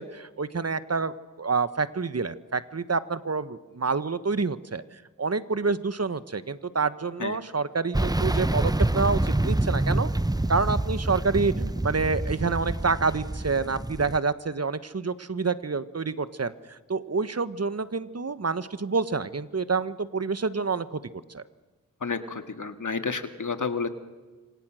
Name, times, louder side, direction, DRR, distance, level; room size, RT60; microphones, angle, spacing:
voice 1, 0.0-4.8 5.2-10.1 10.5-21.0 21.3-21.4, right 4 dB, 55° right, 14 dB, 1.3 m, -28 dB
sound 1, 7.9-14.2, right 1 dB, 10° right, 0.9 m, -27 dB
voice 2, 22.0-23.9, left 5 dB, 75° left, 8 dB, 2.1 m, -30 dB
29.5 x 26.0 x 6.4 m, 1.3 s
cardioid pair, 45°, 31 cm